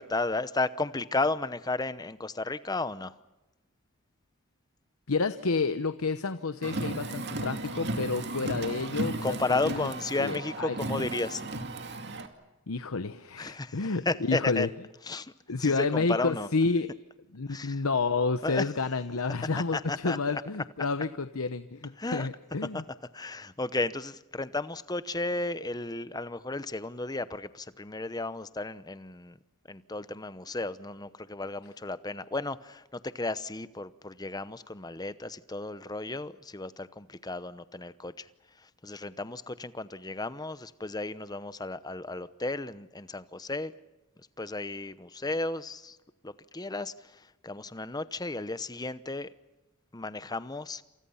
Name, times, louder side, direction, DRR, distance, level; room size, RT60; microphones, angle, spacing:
voice 1, 0.0-3.1 9.2-11.4 13.4-14.7 15.1-15.3 15.6-16.5 17.5-17.8 18.4-18.6 19.7-20.4 22.0-22.3 22.7-22.8 23.1-29.4 29.7-38.3 38.8-43.7 44.4-46.0 46.2-49.3 49.9-50.8, left 2 dB, 20° left, 0.8 m, -33 dB
voice 2, 5.1-9.9 10.1-10.8 12.7-14.7 15.5-16.9 17.3-22.8, left 4 dB, 80° left, 0.9 m, -30 dB
Car, 6.6-12.3, right 2 dB, 55° right, 2.4 m, -35 dB
28.5 x 27.5 x 5.7 m
head